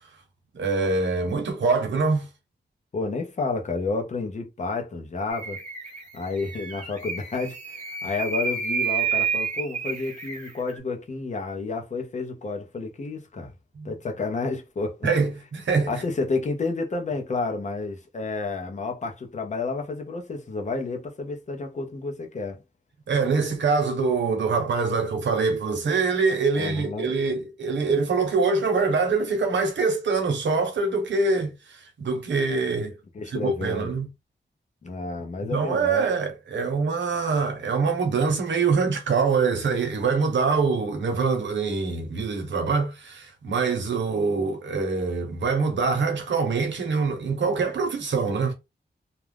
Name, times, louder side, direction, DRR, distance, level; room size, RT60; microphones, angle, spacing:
voice 1, 0.5-2.3 13.8-13.9 15.0-16.0 23.1-32.9 33.2-34.1 35.4-48.5, right 4 dB, 90° right, 0.8 m, -24 dB
voice 2, 2.9-5.6 6.1-13.5 13.8-15.0 15.9-22.6 26.5-27.1 33.1-33.9 34.8-36.1, left 3 dB, 40° left, 0.6 m, -30 dB
sound 1, 5.3-10.8, right 6 dB, 40° right, 1.0 m, -30 dB
2.3 x 2.1 x 3.3 m
wide cardioid pair, 170°, 18 cm